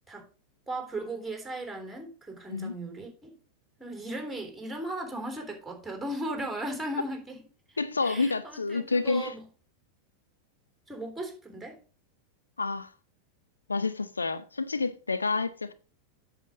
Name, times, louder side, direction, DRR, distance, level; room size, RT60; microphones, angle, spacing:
voice 1, 0.7-3.3 3.8-7.4 7.7-9.4 10.9-11.8, right 1 dB, 5° right, 3.2 m, -37 dB
voice 2, 7.8-9.3 12.6-12.9 13.7-15.7, left 4 dB, 75° left, 0.5 m, -29 dB
8.3 x 6.8 x 5.0 m
figure-of-eight pair, 90°, 0 cm